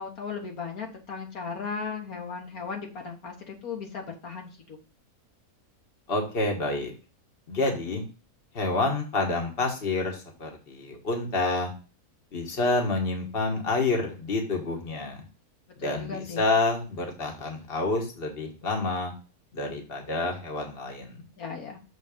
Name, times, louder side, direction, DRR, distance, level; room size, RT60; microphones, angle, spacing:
voice 1, 0.0-4.8 15.8-16.5 21.4-21.8, left 5 dB, 70° left, 1 dB, 1.7 m, -36 dB
voice 2, 6.1-6.9 7.5-8.0 8.5-11.7 12.3-15.2 15.8-19.1 19.5-21.2, left 2 dB, 40° left, 2 dB, 1.6 m, -28 dB
6.8 x 4.0 x 5.1 m, 0.35 s
omnidirectional pair, 1.6 m